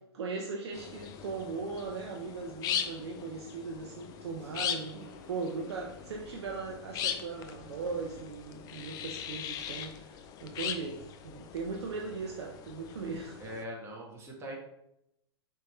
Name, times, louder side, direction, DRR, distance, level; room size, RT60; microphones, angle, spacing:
voice 1, 0.1-10.1 10.4-13.4, right 4 dB, 70° right, 0 dB, 0.7 m, -38 dB
sound 1, 0.7-13.6, left 9 dB, 25° left, 0.4 m, -40 dB
sound 2, 3.6-9.8, left 3 dB, 55° left, 1.0 m, -58 dB
voice 2, 4.5-4.9 13.4-14.6, equal, 20° right, -1 dB, 1.2 m, -42 dB
4.3 x 3.4 x 3.1 m, 0.81 s
hypercardioid pair, 120°, 14 cm